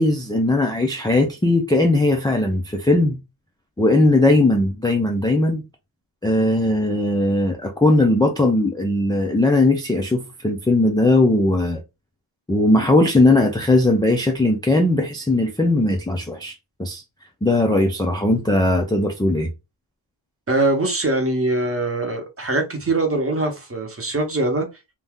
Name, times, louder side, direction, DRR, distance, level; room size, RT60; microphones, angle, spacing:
voice 1, 0.0-3.2 3.8-5.6 6.2-11.8 12.5-17.0 17.4-19.5, left 2 dB, 10° left, 0.3 m, -18 dB
voice 2, 20.5-24.7, right 2 dB, 30° right, 0.8 m, -22 dB
2.7 x 2.3 x 3.4 m
wide cardioid pair, 135°, 50 cm